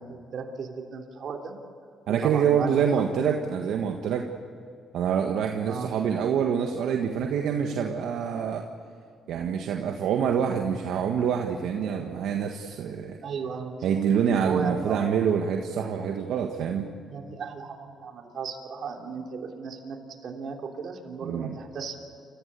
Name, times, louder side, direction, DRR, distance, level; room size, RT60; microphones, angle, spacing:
voice 1, 0.0-1.5 2.1-3.0 5.7-5.9 13.2-15.1 17.0-22.0, right 5 dB, 60° right, 2 dB, 3.3 m, -35 dB
voice 2, 2.1-4.3 4.9-8.7 9.3-13.2 13.8-16.9 21.2-21.6, right 7 dB, 80° right, 2 dB, 1.6 m, -26 dB
29.0 x 15.5 x 8.3 m, 2.5 s
cardioid pair, 90°, 0 cm